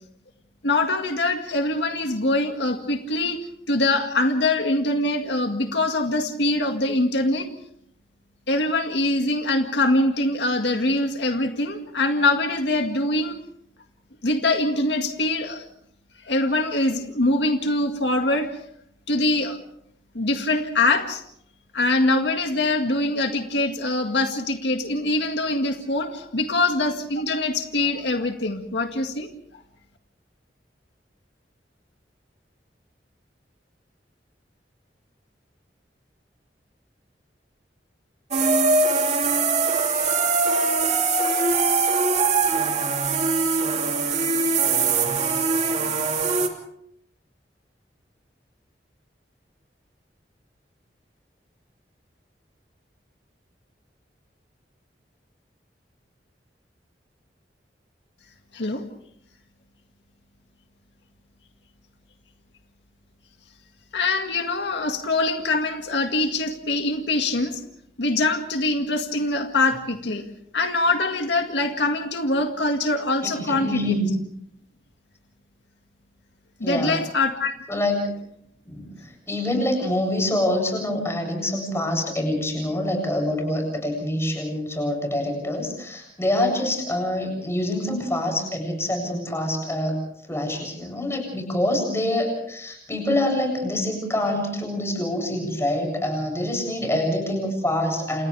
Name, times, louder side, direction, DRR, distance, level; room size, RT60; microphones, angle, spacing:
voice 1, 0.6-3.4 3.7-7.5 8.5-13.4 14.2-15.6 16.2-18.5 19.1-19.6 20.1-21.2 21.7-29.3 58.5-58.8 63.9-67.6 68.0-70.2 70.5-74.0 76.6-77.5, left 2 dB, 85° left, 4 dB, 2.0 m, -23 dB
sound 1, 38.3-46.5, right 4 dB, 40° right, 2.8 m, -22 dB
voice 2, 73.5-74.1 76.6-77.0 77.7-78.0 78.7-90.0 90.3-98.3, left 1 dB, 15° left, 2 dB, 7.8 m, -25 dB
30.0 x 28.0 x 3.4 m, 0.72 s
head